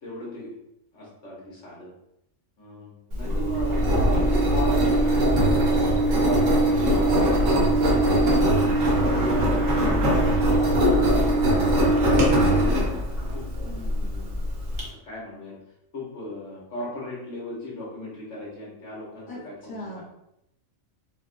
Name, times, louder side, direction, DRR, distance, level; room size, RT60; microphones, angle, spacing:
voice 1, 0.0-0.5 0.9-1.9 2.6-5.3 5.8-7.2 7.6-7.9 8.8-11.3 11.8-12.8 13.3-14.3 15.1-15.5 15.9-20.0, left 1 dB, 65° left, -5 dB, 1.3 m, -38 dB
Engine, 3.1-14.8, right 1 dB, 75° right, 1.2 m, -21 dB
voice 2, 8.2-9.0 19.3-19.4 19.7-20.0, left 1 dB, 20° left, -7 dB, 1.0 m, -39 dB
4.6 x 2.2 x 2.5 m, 0.82 s
omnidirectional pair, 1.4 m